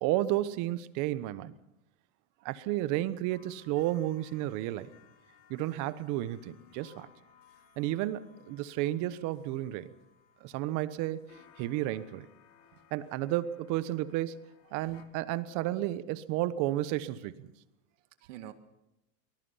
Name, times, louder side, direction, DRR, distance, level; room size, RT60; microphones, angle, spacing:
voice 1, 0.0-1.5 2.4-4.9 5.5-7.1 7.8-9.9 10.4-11.2 11.6-12.3 12.9-14.4 14.7-17.5, right 14 dB, 55° right, 15 dB, 1.2 m, -32 dB
sound 1, 3.3-15.0, left 9 dB, 80° left, 4.3 m, -61 dB
voice 2, 14.6-15.0 17.9-18.5, right 11 dB, 80° right, 9 dB, 2.1 m, -50 dB
24.0 x 20.0 x 5.8 m, 0.87 s
supercardioid pair, 140°, 37 cm